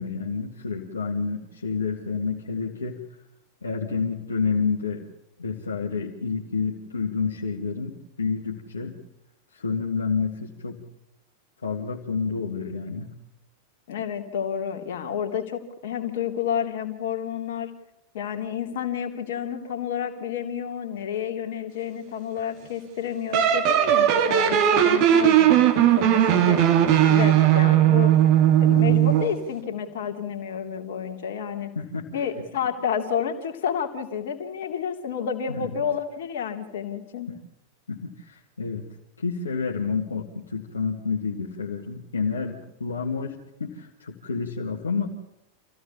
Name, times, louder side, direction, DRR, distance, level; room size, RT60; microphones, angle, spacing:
voice 1, 0.0-3.0 3.6-5.0 5.4-9.0 9.5-10.8 11.6-13.1 28.7-29.0 31.8-32.1 35.5-35.8 37.9-38.8 39.2-45.2, left 5 dB, 70° left, -1 dB, 2.1 m, -29 dB
voice 2, 13.9-17.7 18.1-26.6 27.1-28.1 28.6-31.7 32.1-37.3, left 8 dB, 55° left, 4 dB, 2.8 m, -30 dB
sound 1, 23.3-29.4, right 11 dB, 45° right, 2.3 m, -18 dB
27.0 x 16.0 x 7.1 m, 0.84 s
figure-of-eight pair, 90°, 0 cm